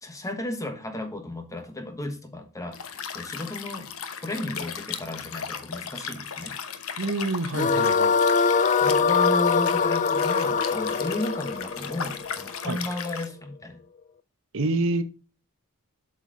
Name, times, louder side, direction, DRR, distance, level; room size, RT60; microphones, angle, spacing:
voice 1, 0.0-3.9 4.2-6.6 7.5-7.9 8.8-13.8, left 2 dB, 15° left, 1.2 m, -34 dB
Liquid, 2.7-13.3, left 7 dB, 70° left, 0.9 m, -36 dB
voice 2, 7.0-8.1 12.7-12.8 14.5-15.0, right 2 dB, 65° right, 1.0 m, -27 dB
sound 1, 7.5-12.8, left 5 dB, 35° left, 0.4 m, -23 dB
8.0 x 5.8 x 3.9 m
head